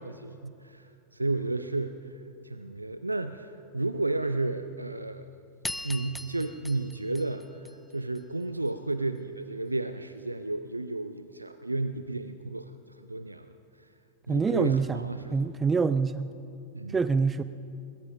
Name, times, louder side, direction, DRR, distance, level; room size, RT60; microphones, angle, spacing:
voice 1, 0.0-2.1 2.4-5.3 5.8-13.5 14.3-15.5 16.7-17.0, right 2 dB, 85° right, 11 dB, 0.4 m, -32 dB
sound 1, 5.6-8.2, left 2 dB, 5° left, 0.7 m, -40 dB
voice 2, 14.3-15.0 15.3-16.3 16.9-17.4, right 4 dB, 15° right, 14 dB, 0.4 m, -25 dB
22.0 x 21.5 x 2.6 m, 2.5 s
figure-of-eight pair, 90°, 0 cm